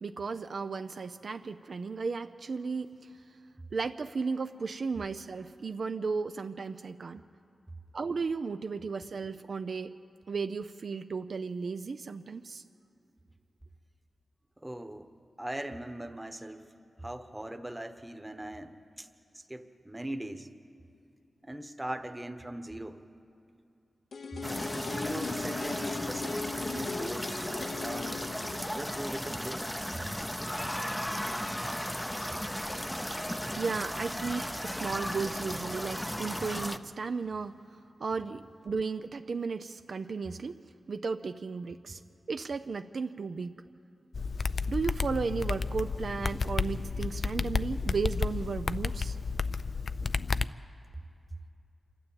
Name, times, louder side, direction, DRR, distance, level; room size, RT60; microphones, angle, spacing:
voice 1, 0.0-2.9 3.7-7.2 7.9-10.0 10.3-12.6 33.6-37.6 38.0-40.6 40.9-42.0 42.3-43.5 44.7-49.2, right 4 dB, 60° right, 8 dB, 0.5 m, -34 dB
voice 2, 14.6-15.1 15.4-16.7 17.0-18.7 19.0-19.1 19.3-20.5 21.4-23.0 24.5-27.5 27.8-28.3 28.6-29.6, right 1 dB, 10° right, 7 dB, 1.1 m, -40 dB
sound 1, 24.1-30.0 30.3-30.4, left 5 dB, 75° left, 0.9 m, -39 dB
sound 2, 24.4-36.8, equal, 5° left, 0.6 m, -35 dB
sound 3, 44.1-50.5, left 4 dB, 60° left, 0.4 m, -32 dB
27.5 x 12.5 x 8.7 m, 2.6 s
wide cardioid pair, 95°, 0 cm